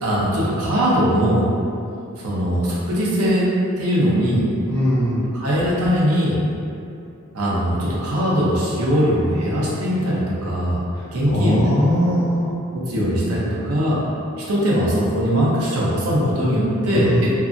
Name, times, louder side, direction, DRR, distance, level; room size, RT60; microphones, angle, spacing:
voice 1, 0.0-1.5 2.2-3.5 3.8-4.4 5.3-6.4 7.3-10.8 11.1-11.6 12.7-14.0 14.5-17.3, equal, 90° right, -6 dB, 0.7 m, -20 dB
voice 2, 4.7-5.2 11.3-12.5 16.9-17.3, equal, 50° left, -8 dB, 0.7 m, -20 dB
2.7 x 2.5 x 2.4 m, 2.6 s
head